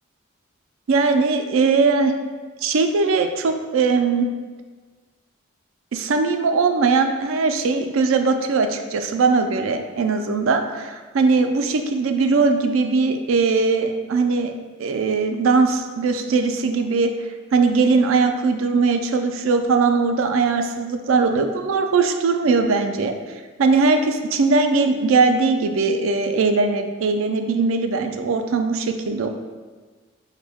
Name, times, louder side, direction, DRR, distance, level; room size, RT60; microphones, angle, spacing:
voice 1, 0.9-2.1 2.6-4.3 5.9-14.5 14.8-17.1 17.5-23.1 23.6-29.3, right 4 dB, 80° right, 6 dB, 0.4 m, -20 dB
5.2 x 2.1 x 3.4 m, 1.4 s
head